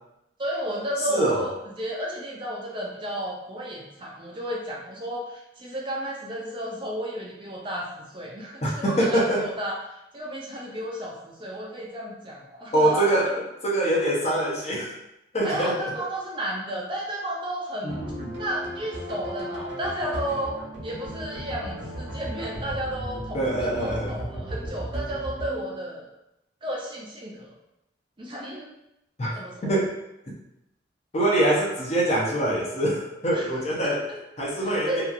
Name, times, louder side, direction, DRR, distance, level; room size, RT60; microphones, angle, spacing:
voice 1, 0.4-13.1 15.4-18.1 18.4-20.6 20.8-26.1 26.6-27.5 28.2-28.7 29.3-29.7 33.3-33.5 33.8-34.2 34.6-35.0, right 1 dB, 25° right, -3 dB, 0.4 m, -33 dB
voice 2, 1.1-1.5 8.6-9.4 12.7-14.9 15.3-15.8 17.8-18.3 23.3-24.3 29.2-29.3 29.6-29.9 31.1-34.1 34.4-35.0, right 1 dB, 35° left, -3 dB, 0.6 m, -24 dB
sound 1, 17.9-26.0, right 1 dB, 75° right, 0.9 m, -35 dB
2.8 x 2.4 x 2.5 m, 0.86 s
head